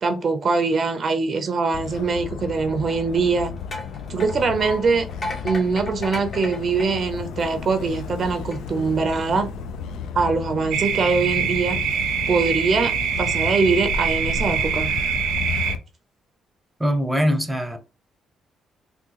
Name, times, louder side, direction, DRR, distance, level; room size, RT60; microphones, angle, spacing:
voice 1, 0.0-3.5 4.1-5.1 5.4-9.5 10.1-11.8 12.3-14.9, right 4 dB, 50° right, 0.5 m, -22 dB
Motor vehicle (road), 1.7-15.8, left 6 dB, 85° left, 0.4 m, -32 dB
sound 1, 2.8-7.8 8.3-8.6, left 2 dB, 45° left, 1.1 m, -36 dB
sound 2, 10.7-15.7, right 8 dB, 90° right, 0.6 m, -24 dB
voice 2, 16.8-17.8, equal, 5° right, 0.7 m, -22 dB
3.6 x 2.3 x 2.8 m
cardioid pair, 90°, 0 cm